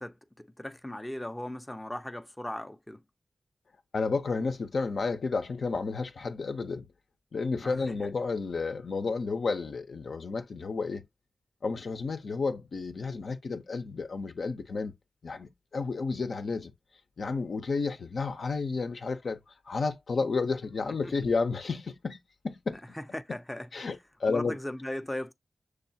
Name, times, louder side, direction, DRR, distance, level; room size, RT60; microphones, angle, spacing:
voice 1, 0.0-3.0 7.6-8.1 21.0-21.1 22.9-23.9 24.3-25.3, left 1 dB, 10° left, 0.5 m, -38 dB
voice 2, 3.9-6.9 7.3-11.0 11.6-14.9 15.2-16.7 17.2-19.4 19.7-22.2 22.4-22.8 23.7-24.5, left 4 dB, 75° left, 0.6 m, -31 dB
6.2 x 2.3 x 2.7 m
cardioid pair, 50°, 0 cm